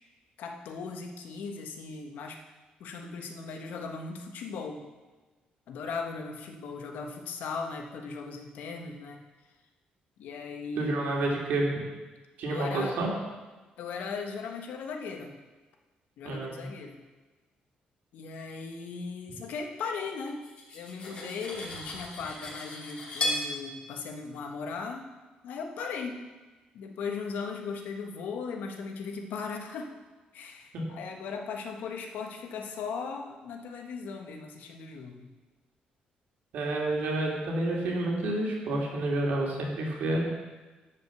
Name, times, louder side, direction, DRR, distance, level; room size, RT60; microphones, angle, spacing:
voice 1, 0.4-2.4 2.8-4.9 5.7-9.2 10.2-11.2 12.5-13.0 13.8-15.4 16.2-17.0 18.1-20.5 20.7-25.1 25.4-26.2 26.7-29.9 30.3-35.3, left 5 dB, 75° left, 3 dB, 1.3 m, -38 dB
voice 2, 10.8-11.7 12.4-13.1 16.2-16.7 30.7-30.8 36.5-40.2, right 2 dB, 75° right, -2 dB, 2.7 m, -29 dB
Cutlery silverware, 20.3-23.5, left 1 dB, 40° left, 2.9 m, -35 dB
11.5 x 5.2 x 7.1 m, 1.2 s
cardioid pair, 145°, 3 cm